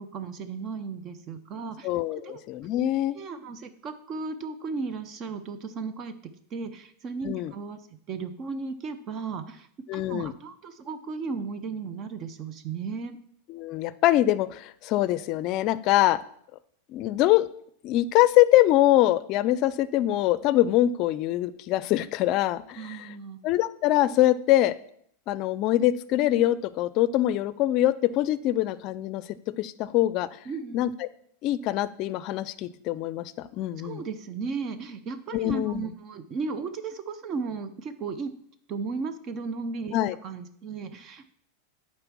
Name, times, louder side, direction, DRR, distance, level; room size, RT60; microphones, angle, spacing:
voice 1, 0.0-1.9 2.2-2.4 3.1-6.1 6.5-7.8 8.1-9.7 9.9-13.2 22.8-23.4 30.5-30.8 33.8-38.3 38.7-40.0 40.2-41.3, right 4 dB, 35° right, 11 dB, 0.6 m, -35 dB
voice 2, 1.8-3.2 7.2-7.5 9.9-10.3 13.5-16.2 16.9-17.5 17.8-23.1 23.4-24.7 25.3-29.2 29.6-30.3 30.7-31.1 31.4-34.0 35.3-35.9 39.9-40.2, left 14 dB, 45° left, 17 dB, 0.4 m, -24 dB
7.8 x 4.3 x 6.1 m, 0.67 s
hypercardioid pair, 120°, 0 cm